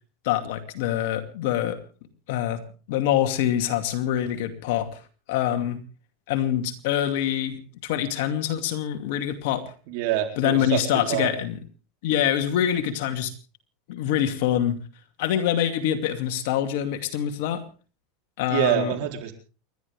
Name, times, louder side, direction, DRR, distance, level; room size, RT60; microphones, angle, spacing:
voice 1, 0.2-1.8 2.3-2.6 2.9-4.9 5.3-5.8 6.3-9.6 10.4-11.6 12.0-13.3 13.9-14.8 15.2-17.6 18.4-18.9, left 11 dB, 70° left, 6 dB, 2.5 m, -25 dB
voice 2, 9.9-10.8 11.1-11.3 18.5-19.3, right 13 dB, 65° right, 4 dB, 4.1 m, -25 dB
29.5 x 11.5 x 3.5 m, 0.37 s
supercardioid pair, 130°, 0 cm